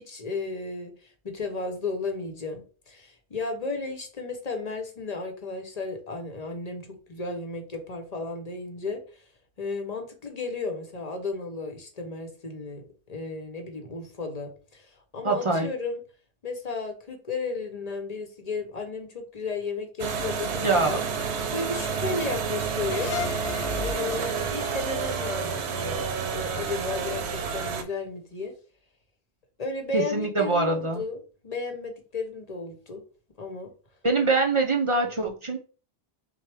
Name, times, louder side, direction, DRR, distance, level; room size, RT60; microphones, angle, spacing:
voice 1, 0.0-9.2 9.6-16.0 16.4-21.0 21.5-23.1 23.8-26.0 26.3-28.5 29.6-33.0 33.4-33.7, left 3 dB, 40° left, 5 dB, 0.9 m, -34 dB
voice 2, 15.2-15.7 20.6-21.0 29.9-31.0 34.0-35.6, right 3 dB, 40° right, 2 dB, 0.5 m, -24 dB
sound 1, 20.0-27.8, right 6 dB, 85° right, 0.9 m, -30 dB
sound 2, 22.9-26.2, left 6 dB, 80° left, 0.9 m, -36 dB
6.1 x 2.2 x 3.4 m, 0.39 s
omnidirectional pair, 1.1 m